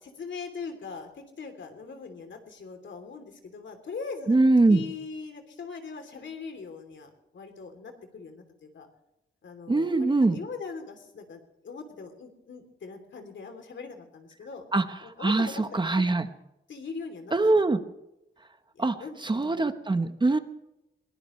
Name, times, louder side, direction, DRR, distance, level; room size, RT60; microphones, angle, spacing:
voice 1, 0.0-4.4 4.7-8.9 9.4-14.6 15.0-16.0 16.7-17.6 18.7-19.7, left 5 dB, 70° left, 6 dB, 3.2 m, -41 dB
voice 2, 4.3-4.8 9.7-10.4 14.7-14.8 15.2-16.2 17.3-17.8 18.8-18.9 19.2-20.4, right 2 dB, 25° right, 8 dB, 1.1 m, -22 dB
22.5 x 19.5 x 3.3 m, 0.91 s
wide cardioid pair, 145°, 20 cm